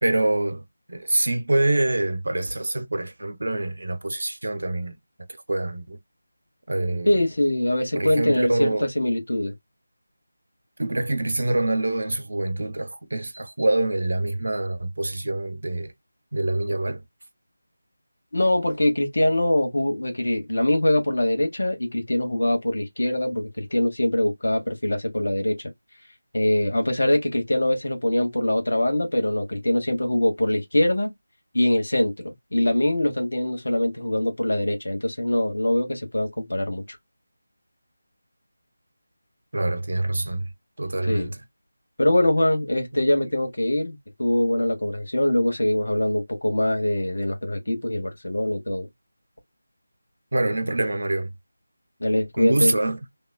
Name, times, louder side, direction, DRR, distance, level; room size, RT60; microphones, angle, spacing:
voice 1, 0.0-5.0 5.5-6.0 6.7-7.1 7.9-8.9 10.8-15.9 16.3-17.0 39.5-40.5 40.8-41.4 42.9-43.0 50.3-51.3 52.4-53.0, right 2 dB, 75° right, 0.7 m, -25 dB
voice 2, 7.1-9.5 18.3-25.5 26.3-31.1 31.5-37.0 41.0-41.3 42.0-48.9 52.0-52.7, left 1 dB, 85° left, 1.3 m, -23 dB
2.9 x 2.3 x 2.3 m
figure-of-eight pair, 175°, 0 cm